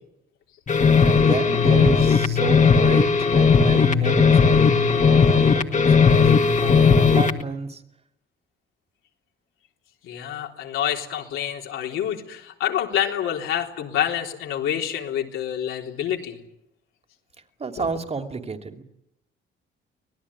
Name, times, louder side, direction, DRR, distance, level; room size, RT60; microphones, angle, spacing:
sound 1, 0.7-7.4, left 5 dB, 40° left, 1.8 m, -17 dB
voice 1, 1.0-7.8 17.6-18.8, right 4 dB, 30° right, 6 dB, 2.9 m, -31 dB
voice 2, 10.0-16.4 17.8-17.9, left 10 dB, 90° left, 1 dB, 3.8 m, -27 dB
25.5 x 18.5 x 10.0 m, 0.83 s
cardioid pair, 90°, 20 cm